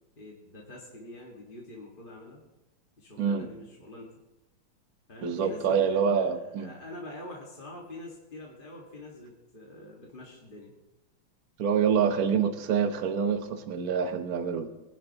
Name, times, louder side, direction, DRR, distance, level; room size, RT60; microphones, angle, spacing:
voice 1, 0.2-2.4 3.0-4.1 5.1-6.3 6.6-10.7, left 1 dB, 25° left, -3 dB, 1.8 m, -45 dB
voice 2, 3.2-3.5 5.2-6.7 11.6-14.7, right 7 dB, 50° right, 7 dB, 1.3 m, -26 dB
22.0 x 11.0 x 3.0 m, 0.96 s
omnidirectional pair, 2.3 m